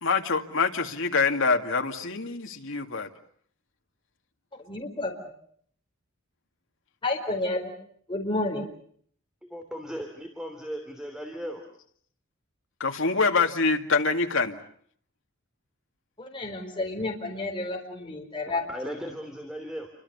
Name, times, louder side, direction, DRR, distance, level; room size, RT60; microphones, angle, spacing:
voice 1, 0.0-3.1 12.8-14.6, left 4 dB, 65° left, 4 dB, 2.3 m, -25 dB
voice 2, 4.6-5.1 7.0-7.7 8.1-8.7 16.2-18.6, left 2 dB, 25° left, 1 dB, 4.8 m, -30 dB
voice 3, 9.4-11.7 18.5-19.9, equal, 5° right, 4 dB, 3.0 m, -37 dB
29.5 x 25.0 x 7.0 m, 0.63 s
head